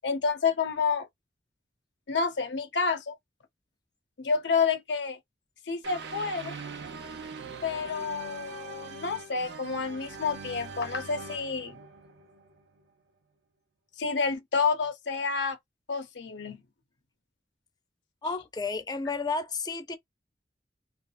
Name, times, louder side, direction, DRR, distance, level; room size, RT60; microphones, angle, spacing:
voice 1, 0.0-1.1 2.1-3.2 4.2-5.2 5.7-6.5 7.6-11.8 14.0-15.6 15.9-16.6, left 5 dB, 75° left, 0.8 m, -29 dB
sound 1, 5.8-12.8, right 4 dB, 70° right, 0.7 m, -42 dB
voice 2, 18.2-20.0, left 4 dB, 25° left, 0.5 m, -32 dB
3.4 x 2.0 x 2.4 m
head